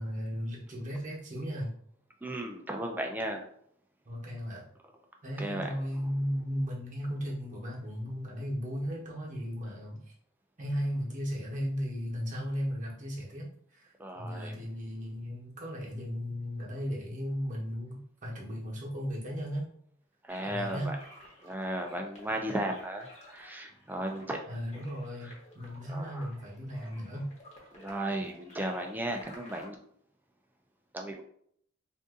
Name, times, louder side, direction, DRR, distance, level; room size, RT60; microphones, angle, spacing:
voice 1, 0.0-1.7 4.0-4.6 5.2-10.0 10.6-13.9 14.1-19.7 20.4-21.0 24.5-27.3, equal, 40° right, -3 dB, 1.0 m, -36 dB
voice 2, 2.2-3.5 5.4-5.7 14.0-14.6 20.2-21.0 21.4-24.4 25.9-26.3 27.7-29.8 30.9-31.2, right 1 dB, 10° right, 3 dB, 0.4 m, -35 dB
sound 1, 20.3-29.7, left 1 dB, 35° left, 0.9 m, -54 dB
2.6 x 2.5 x 3.6 m, 0.65 s
head